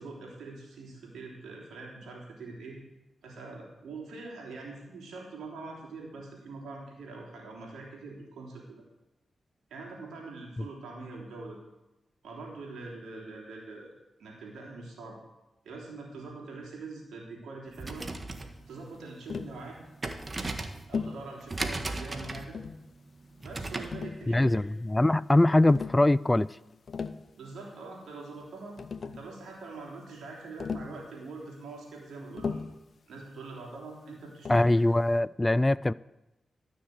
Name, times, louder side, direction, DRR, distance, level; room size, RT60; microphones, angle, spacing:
voice 1, 0.0-2.8 3.2-8.8 9.7-11.6 12.2-13.9 14.2-15.2 15.6-18.1 18.7-19.8 20.9-22.6 23.4-24.6 27.4-28.8 29.0-32.6 33.1-34.8, right 3 dB, 85° right, 3.5 m, -43 dB
sound 1, 17.7-24.0, right 2 dB, 40° right, 1.5 m, -38 dB
Tap, 19.3-19.6 20.9-21.2 22.3-22.9 23.9-24.7 25.7-26.0 26.7-27.3 28.4-28.5 28.8-29.3 30.6-31.0 32.4-32.8 34.4-34.8, left 5 dB, 65° left, 0.7 m, -36 dB
voice 2, 24.3-26.5 34.5-35.9, left 1 dB, 20° left, 0.3 m, -22 dB
13.0 x 6.4 x 7.9 m
supercardioid pair, 45°, 0 cm